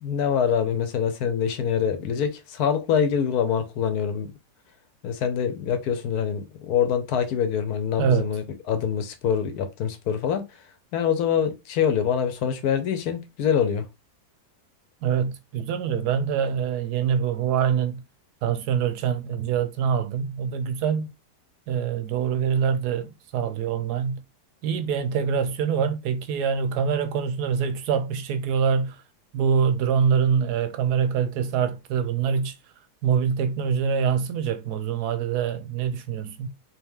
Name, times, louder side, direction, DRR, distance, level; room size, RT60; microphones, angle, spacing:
voice 1, 0.0-4.3 5.0-10.4 10.9-13.9, left 8 dB, 70° left, 1.2 m, -25 dB
voice 2, 8.0-8.4 15.0-18.0 18.4-21.1 21.7-24.2 24.6-29.0 29.3-32.5 33.0-36.5, right 7 dB, 75° right, 1.1 m, -25 dB
3.5 x 2.9 x 3.5 m
omnidirectional pair, 1.8 m